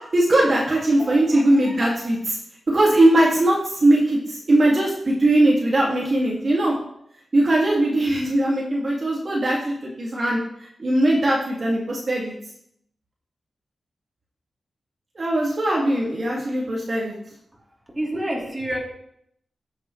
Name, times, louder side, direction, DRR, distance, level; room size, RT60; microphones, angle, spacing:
voice 1, 0.1-2.4 2.7-6.7 7.3-10.4 10.8-12.3 15.2-17.2, right 1 dB, 45° right, -4 dB, 2.3 m, -20 dB
voice 2, 1.0-1.7 17.9-18.8, right 1 dB, 15° right, -3 dB, 3.3 m, -29 dB
14.0 x 7.4 x 3.3 m, 0.73 s
cardioid pair, 85°, 0 cm